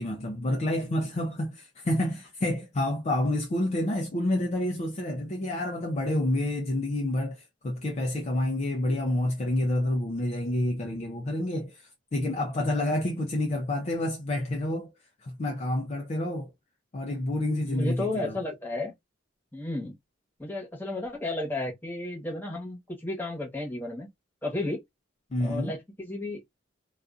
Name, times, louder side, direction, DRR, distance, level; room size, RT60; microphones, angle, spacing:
voice 1, 0.0-14.9 15.2-16.5 16.9-18.4 25.3-25.7, left 1 dB, 35° left, 0.5 m, -28 dB
voice 2, 17.6-18.9 19.5-19.9 20.4-24.1 24.4-24.8 25.4-26.4, left 2 dB, 10° left, 1.0 m, -33 dB
2.5 x 2.3 x 2.4 m
head